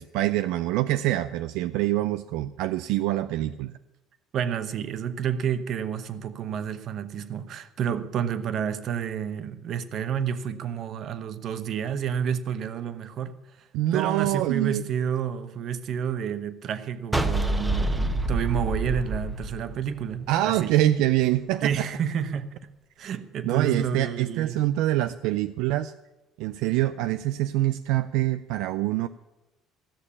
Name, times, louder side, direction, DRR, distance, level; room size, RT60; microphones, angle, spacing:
voice 1, 0.0-3.7 13.7-14.8 20.3-21.9 23.4-25.9 26.4-29.1, right 14 dB, 85° right, 0.4 m, -25 dB
voice 2, 4.3-13.7 13.9-20.7 21.6-22.6 23.0-24.6, right 8 dB, 55° right, 1.0 m, -30 dB
sound 1, 17.1-20.4, right 2 dB, 10° right, 1.0 m, -27 dB
14.5 x 6.7 x 8.4 m
cardioid pair, 105°, 0 cm